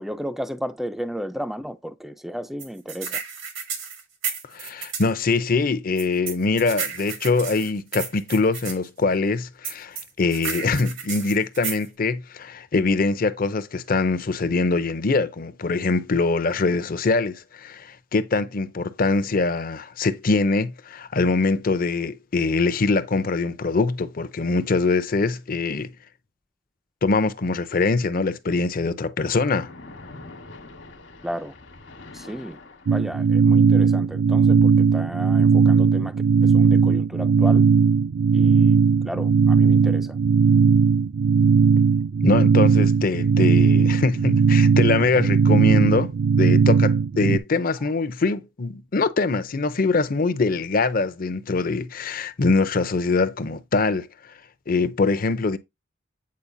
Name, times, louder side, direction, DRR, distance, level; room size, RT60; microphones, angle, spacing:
voice 1, 0.0-3.2 31.2-31.5 32.1-32.6 32.9-37.7 38.3-38.8 39.0-40.2, equal, ahead, 0.3 m, -33 dB
sound 1, 2.6-5.1 6.0-8.8 9.6-11.9, right 6 dB, 90° right, 2.0 m, -32 dB
voice 2, 4.5-25.9 27.0-29.7 42.2-46.1 46.4-54.1 54.7-55.6, left 3 dB, 45° left, 0.6 m, -23 dB
Splash splatter, 29.4-33.4, left 2 dB, 65° left, 1.3 m, -44 dB
sound 2, 32.9-47.4, right 5 dB, 70° right, 0.4 m, -18 dB
8.6 x 4.3 x 2.6 m
head